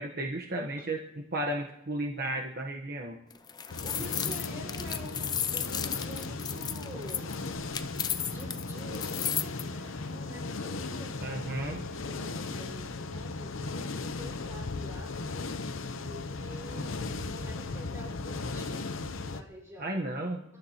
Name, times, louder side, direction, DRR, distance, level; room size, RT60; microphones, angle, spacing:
voice 1, 0.0-3.2 11.2-11.9 19.8-20.4, right 1 dB, 50° right, 0 dB, 1.1 m, -34 dB
sound 1, 3.3-9.6, left 8 dB, 20° left, 0.4 m, -34 dB
sound 2, 3.7-19.4, left 3 dB, 85° left, 0.8 m, -37 dB
voice 2, 3.8-8.0 8.3-11.5 12.0-15.1 16.0-20.2, equal, 15° right, -3 dB, 4.9 m, -48 dB
29.5 x 12.5 x 2.9 m, 0.90 s
head